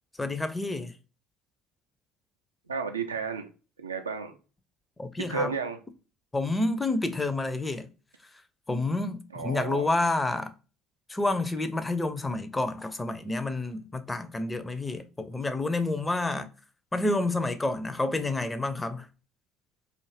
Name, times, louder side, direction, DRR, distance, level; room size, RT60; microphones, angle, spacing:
voice 1, 0.2-0.9 5.0-5.5 6.3-7.9 8.7-10.5 11.1-16.5 16.9-19.1, left 2 dB, 15° left, 0.4 m, -29 dB
voice 2, 2.7-3.5 3.8-4.4 5.3-5.8 9.3-9.9, right 5 dB, 85° right, 0.3 m, -32 dB
2.5 x 2.4 x 3.1 m
figure-of-eight pair, 55°, 0 cm